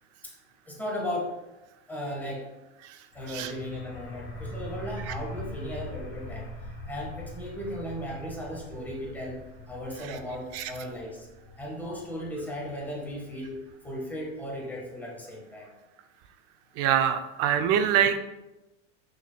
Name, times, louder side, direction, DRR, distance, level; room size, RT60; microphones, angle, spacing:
voice 1, 0.7-1.4 1.9-2.5 3.1-6.5 6.8-11.3 11.5-15.7, equal, 5° left, -3 dB, 1.3 m, -36 dB
sound 1, 3.1-14.6, equal, 50° left, 1.6 m, -42 dB
voice 2, 16.8-18.2, right 9 dB, 45° right, 8 dB, 0.4 m, -25 dB
6.2 x 3.5 x 2.3 m, 1.0 s
supercardioid pair, 120°, 34 cm